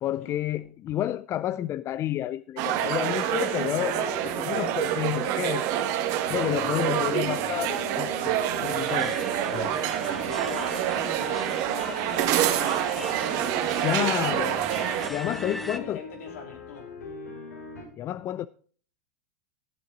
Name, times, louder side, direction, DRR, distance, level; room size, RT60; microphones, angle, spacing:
voice 1, 0.0-5.9 6.3-8.3 8.6-9.8 13.8-14.6 15.1-16.0 18.0-18.5, left 12 dB, 35° left, 0.4 m, -30 dB
sound 1, 2.6-17.8, left 3 dB, 90° left, 4.7 m, -42 dB
sound 2, 2.6-15.1, right 11 dB, 50° right, 1.5 m, -27 dB
voice 2, 3.9-4.2 6.6-7.3 10.0-13.2 13.7-14.4 15.1-16.9, left 5 dB, 70° left, 3.7 m, -43 dB
sound 3, 8.7-15.8, equal, ahead, 1.1 m, -40 dB
14.0 x 7.8 x 3.9 m
hypercardioid pair, 95°, 8 cm